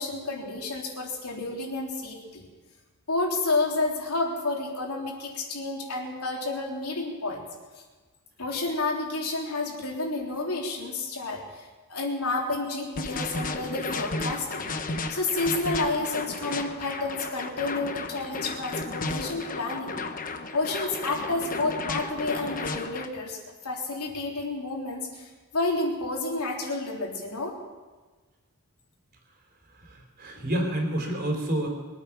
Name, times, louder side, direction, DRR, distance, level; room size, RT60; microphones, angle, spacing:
voice 1, 0.0-2.5 3.1-7.4 8.4-14.7 15.1-20.0 20.5-23.4 23.6-27.6 30.3-30.4, left 2 dB, 75° left, -1 dB, 3.4 m, -30 dB
sound 1, 13.0-23.1, left 3 dB, 40° left, 1.0 m, -33 dB
voice 2, 29.7-31.7, right 1 dB, 45° right, 2 dB, 3.5 m, -29 dB
23.0 x 9.2 x 6.0 m, 1.3 s
head